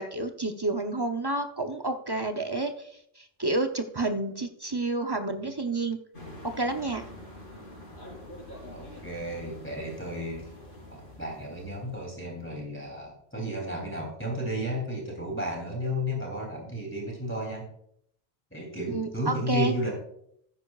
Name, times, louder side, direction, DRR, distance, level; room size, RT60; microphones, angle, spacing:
voice 1, 0.0-2.9 3.2-6.0 6.4-7.0 18.9-19.7, right 2 dB, 25° right, 6 dB, 0.7 m, -30 dB
sound 1, 6.1-12.5, left 1 dB, 80° left, 4.1 m, -46 dB
voice 2, 8.7-10.5 10.9-17.7 18.5-20.0, equal, 10° left, -2 dB, 3.2 m, -33 dB
13.5 x 10.0 x 2.4 m, 0.70 s
omnidirectional pair, 1.1 m